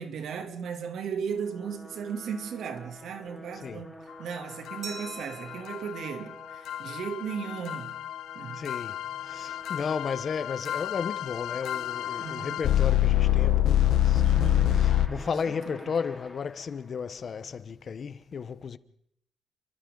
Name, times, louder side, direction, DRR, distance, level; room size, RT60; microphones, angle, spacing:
voice 1, 0.0-8.0 8.3-8.7 12.2-12.6 14.2-14.8 15.2-15.9, right 7 dB, 75° right, 2.6 m, -36 dB
sound 1, 1.1-17.4, left 1 dB, ahead, 3.3 m, -49 dB
sound 2, 4.7-15.1, left 12 dB, 85° left, 1.0 m, -27 dB
Glass, 4.8-7.3, right 4 dB, 55° right, 4.1 m, -46 dB
voice 2, 8.6-9.0 9.3-14.2 15.1-18.8, left 6 dB, 45° left, 0.9 m, -34 dB
30.0 x 24.0 x 3.9 m
cardioid pair, 120°, 0 cm